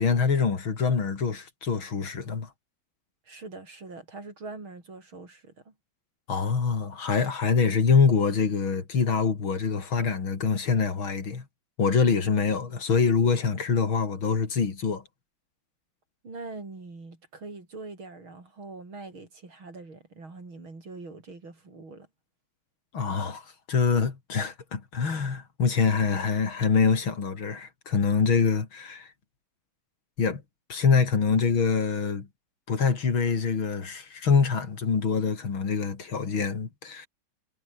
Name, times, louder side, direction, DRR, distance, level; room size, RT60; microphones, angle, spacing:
voice 1, 0.0-2.5 6.3-11.4 11.8-15.0 22.9-23.4 23.7-29.1 30.2-30.4 30.7-32.3 32.7-37.1, left 5 dB, 85° left, 3.9 m, -25 dB
voice 2, 3.2-5.7 16.2-22.1, right 3 dB, 90° right, 6.4 m, -43 dB
omnidirectional pair, 2.2 m